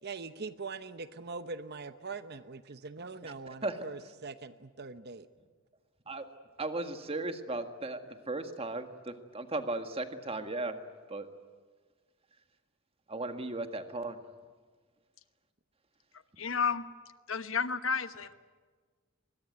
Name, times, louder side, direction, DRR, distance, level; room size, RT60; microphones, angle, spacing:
voice 1, 0.0-5.3, right 4 dB, 50° right, 12 dB, 0.9 m, -42 dB
voice 2, 6.6-8.0 8.3-10.8 11.1-11.3 13.1-14.2, right 2 dB, 30° right, 7 dB, 1.8 m, -36 dB
voice 3, 16.4-16.8 17.3-18.3, left 6 dB, 65° left, 12 dB, 1.2 m, -31 dB
24.5 x 22.0 x 9.4 m, 1.5 s
head